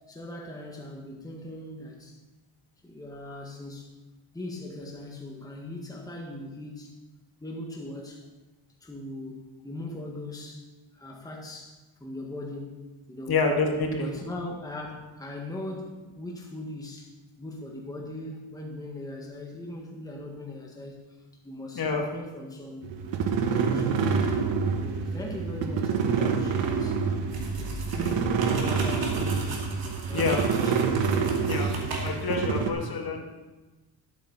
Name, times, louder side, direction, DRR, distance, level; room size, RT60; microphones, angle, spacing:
voice 1, 0.1-2.2 2.8-3.9 4.3-7.0 7.4-8.3 8.8-13.4 14.0-17.1 17.4-21.2 21.4-22.9 23.4-24.4 24.8-27.0 27.5-29.7 30.1-31.7, left 1 dB, 10° left, -1 dB, 1.6 m, -40 dB
voice 2, 13.3-14.0 21.8-22.0 30.1-30.4 31.4-31.7 32.0-33.2, left 4 dB, 50° left, 2 dB, 1.9 m, -27 dB
sound 1, 22.8-32.7, right 5 dB, 70° right, 1.2 m, -27 dB
sound 2, 27.3-32.4, right 2 dB, 50° right, 2.5 m, -38 dB
11.5 x 8.4 x 4.0 m, 1.1 s
cardioid pair, 100°, 46 cm